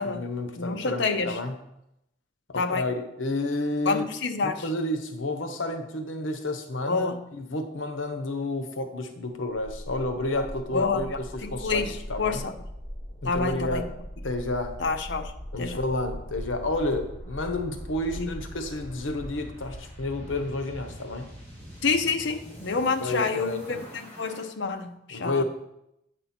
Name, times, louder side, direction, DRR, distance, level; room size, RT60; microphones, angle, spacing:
voice 1, 0.0-1.5 2.5-4.1 4.4-12.4 13.2-13.9 14.2-14.8 15.5-21.3 23.0-23.9 25.1-25.4, left 2 dB, 85° left, 7 dB, 1.0 m, -31 dB
voice 2, 0.6-1.4 2.6-2.8 3.9-4.7 6.9-7.2 10.4-10.5 10.7-12.5 13.2-13.8 14.8-15.3 15.6-15.8 18.2-18.3 21.8-25.4, left 4 dB, 65° left, 7 dB, 0.7 m, -28 dB
sound 1, 9.6-24.4, equal, 10° left, 3.2 m, -41 dB
8.9 x 5.5 x 4.3 m, 0.83 s
head